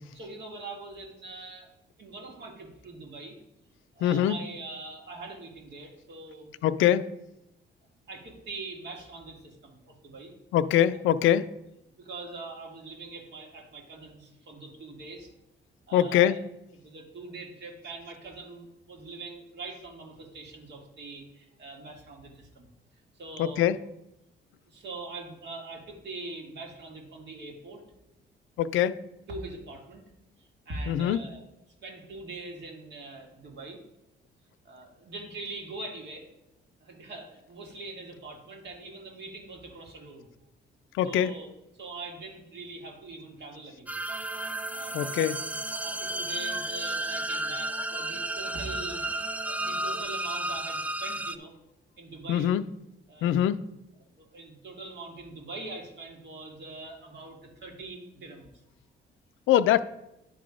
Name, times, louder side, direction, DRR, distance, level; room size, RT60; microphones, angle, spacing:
voice 1, 0.1-1.7 2.0-3.4 4.0-6.5 8.1-10.3 11.9-15.3 15.9-16.4 16.8-22.7 23.2-23.7 24.7-27.8 28.6-28.7 29.3-30.0 30.4-31.4 31.8-33.8 34.6-36.3 36.8-40.3 41.0-44.0 44.7-45.4 45.8-51.5 52.0-52.5 53.1-53.6 54.0-58.6, right 3 dB, 60° right, 1 dB, 2.0 m, -43 dB
voice 2, 4.0-4.4 6.6-7.0 10.5-11.5 15.9-16.4 23.4-23.8 28.6-29.0 30.9-31.2 40.9-41.3 44.9-45.4 52.3-52.6 53.2-53.6 59.5-59.8, left 11 dB, 85° left, 14 dB, 0.4 m, -23 dB
sound 1, 43.9-51.4, right 1 dB, 5° right, 0.3 m, -33 dB
sound 2, 44.1-50.0, right 4 dB, 25° right, 0.7 m, -45 dB
10.0 x 3.8 x 4.9 m, 0.89 s
cardioid pair, 90°, 20 cm